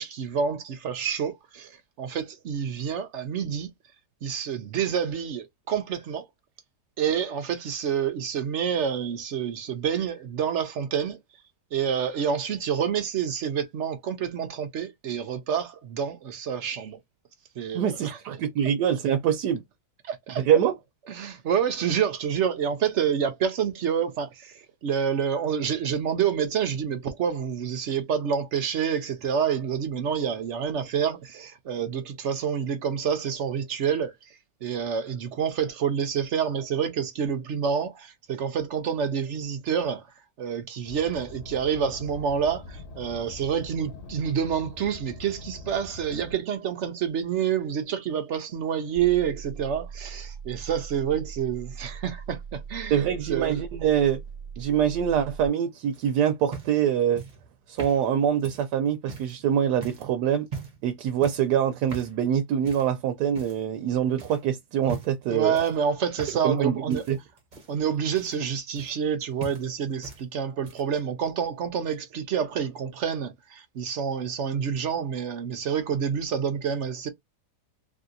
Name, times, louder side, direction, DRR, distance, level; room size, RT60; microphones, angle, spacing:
voice 1, 0.0-3.7 4.2-6.2 7.0-11.2 11.7-17.0 17.6-18.4 20.0-20.4 21.1-34.3 34.6-40.0 40.4-53.0 53.3-53.6 65.3-67.0 67.7-77.1, right 7 dB, 65° right, 0.7 m, -28 dB
voice 2, 17.7-19.6 20.4-20.7 52.9-54.2 54.6-57.2 57.7-60.5 60.8-65.6 66.4-67.2, right 9 dB, 85° right, 1.2 m, -24 dB
Car, 40.8-46.3, left 3 dB, 45° left, 1.1 m, -43 dB
sound 1, 49.0-55.5, right 6 dB, 15° right, 1.2 m, -40 dB
sound 2, 55.9-59.4 59.8-60.1 60.5-60.9 61.2-61.5 61.9-62.2 62.6-62.9 63.3-63.8 64.2-64.4 64.8-65.2 65.5-66.6 66.9-69.1 69.4-70.2 70.5-71.0 71.9-72.0, right 5 dB, 35° right, 0.9 m, -40 dB
3.3 x 2.7 x 2.5 m
omnidirectional pair, 1.8 m